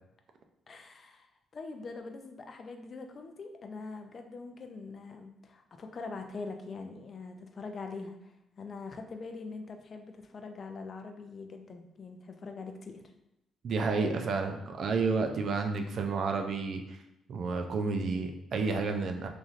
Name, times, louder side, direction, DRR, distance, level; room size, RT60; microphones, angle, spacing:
voice 1, 0.7-13.0, left 4 dB, 45° left, 5 dB, 0.4 m, -43 dB
voice 2, 13.6-17.0 17.3-19.3, right 4 dB, 60° right, 5 dB, 0.4 m, -30 dB
3.1 x 2.5 x 2.5 m, 0.87 s
cardioid pair, 90°, 0 cm